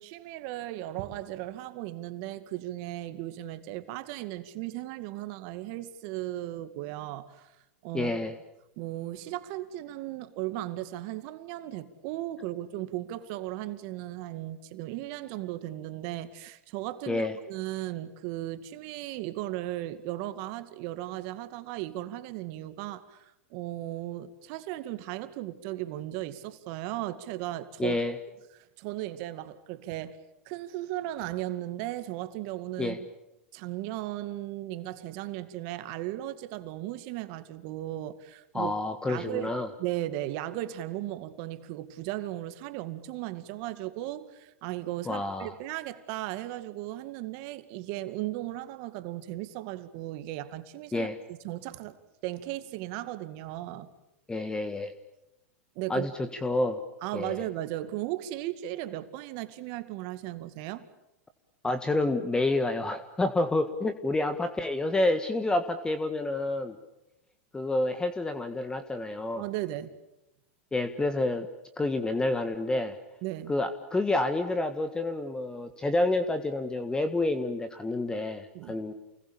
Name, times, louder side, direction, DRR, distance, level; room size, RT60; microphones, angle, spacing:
voice 1, 0.0-7.5 7.8-8.1 8.8-28.0 28.5-30.2 30.5-33.1 33.5-38.8 39.1-39.5 39.8-52.0 52.2-53.9 55.8-56.1 57.0-60.9 69.4-69.9 73.2-73.5 78.5-78.8, right 15 dB, 50° right, 2.2 m, -36 dB
voice 2, 7.9-8.3 17.1-17.3 27.8-28.1 32.8-33.0 38.5-39.7 45.0-45.5 50.9-51.2 54.3-54.9 55.9-56.8 57.1-57.4 61.6-66.8 67.5-69.4 70.7-71.5 71.8-73.0 73.5-78.9, left 2 dB, 10° left, 1.6 m, -29 dB
29.0 x 21.5 x 8.8 m
hypercardioid pair, 115°, 7 cm